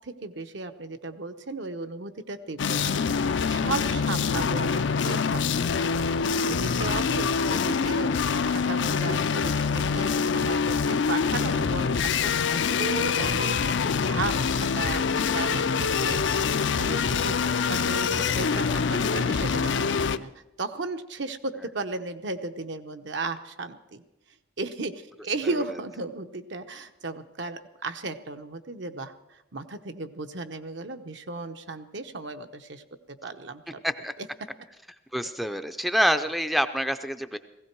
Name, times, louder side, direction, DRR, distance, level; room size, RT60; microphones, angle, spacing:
voice 1, 0.0-5.9 6.4-8.1 8.4-13.6 13.8-20.3 20.6-24.0 24.6-33.8, right 3 dB, 65° right, 7 dB, 0.9 m, -35 dB
sound 1, 2.6-20.2, left 5 dB, 65° left, 0.5 m, -25 dB
voice 2, 35.1-37.4, equal, ahead, 9 dB, 0.4 m, -26 dB
18.0 x 16.0 x 4.6 m, 0.97 s
head